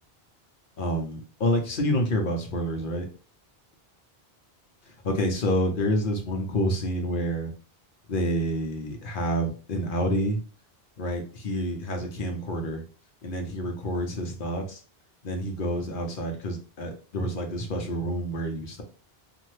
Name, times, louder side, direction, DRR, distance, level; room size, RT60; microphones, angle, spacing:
voice 1, 0.8-3.1 5.0-7.5 8.1-10.4 11.0-12.8 13.2-14.8 15.2-18.8, equal, 60° left, 3 dB, 0.9 m, -28 dB
2.7 x 2.5 x 3.1 m, 0.37 s
omnidirectional pair, 1.0 m